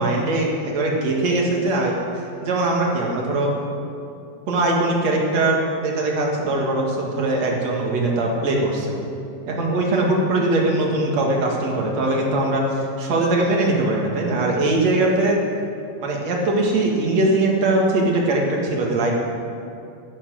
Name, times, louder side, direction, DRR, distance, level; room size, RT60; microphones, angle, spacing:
voice 1, 0.0-2.0 2.4-3.5 4.5-9.0 9.5-15.4 16.0-19.1, right 2 dB, 50° right, -1 dB, 2.5 m, -21 dB
13.0 x 11.5 x 6.3 m, 2.5 s
omnidirectional pair, 4.4 m